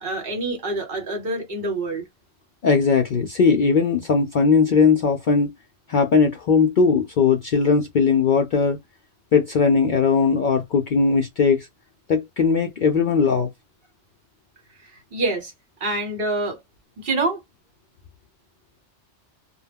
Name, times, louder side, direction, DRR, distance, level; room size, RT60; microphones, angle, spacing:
voice 1, 0.0-2.0 14.8-15.5 15.8-16.6 17.0-17.4, right 2 dB, 55° right, 1.1 m, -26 dB
voice 2, 2.6-5.5 5.9-8.8 9.3-11.7 12.1-13.5, left 5 dB, 60° left, 0.5 m, -19 dB
2.2 x 2.1 x 3.4 m
omnidirectional pair, 1.2 m